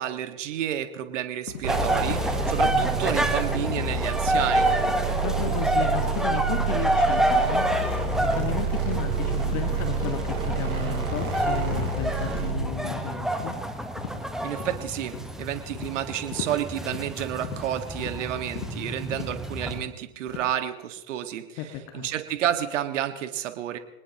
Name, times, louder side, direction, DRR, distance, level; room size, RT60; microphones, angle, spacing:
voice 1, 0.0-4.7 14.4-23.8, right 11 dB, 55° right, 8 dB, 1.8 m, -30 dB
sound 1, 1.5-1.7 2.0-2.2 2.6-2.8 3.1-3.4 3.7-4.0 4.3-4.5 4.8-5.1 5.4-5.6 5.9-6.2 6.5-6.7 7.1-7.3 7.7-7.9 8.3-8.5 8.9-9.1 9.5-9.7 10.0-10.2 10.6-10.8 11.2-11.4 11.7-11.9 12.3-12.6 12.8-13.0 13.4-13.5 14.0-14.3 14.6-14.9 15.1-15.4 15.7-16.0 16.3-16.6 16.9-17.1 17.4-17.6 18.0-18.2 18.6-18.7 19.1-19.3 19.7-19.9 20.3-20.5, left 6 dB, 60° left, 4.3 m, -38 dB
sound 2, 1.6-12.7, right 5 dB, 75° right, 3.5 m, -29 dB
sound 3, 1.7-19.8, right 1 dB, ahead, 1.1 m, -28 dB
voice 2, 5.1-13.6 21.6-22.1, left 9 dB, 35° left, 5 dB, 1.9 m, -34 dB
24.5 x 19.5 x 3.0 m, 0.99 s
hypercardioid pair, 110°, 44 cm